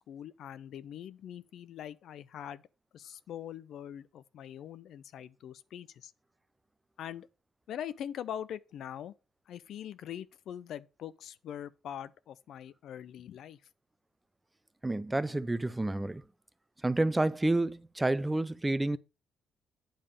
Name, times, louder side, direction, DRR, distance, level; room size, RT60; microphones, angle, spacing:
voice 1, 0.0-2.6 2.9-6.1 7.0-7.3 7.7-9.1 9.5-13.6, left 10 dB, 75° left, 0.5 m, -43 dB
voice 2, 14.8-16.2 16.8-19.0, right 2 dB, 15° right, 0.5 m, -29 dB
8.9 x 3.6 x 6.5 m
cardioid pair, 90°, 0 cm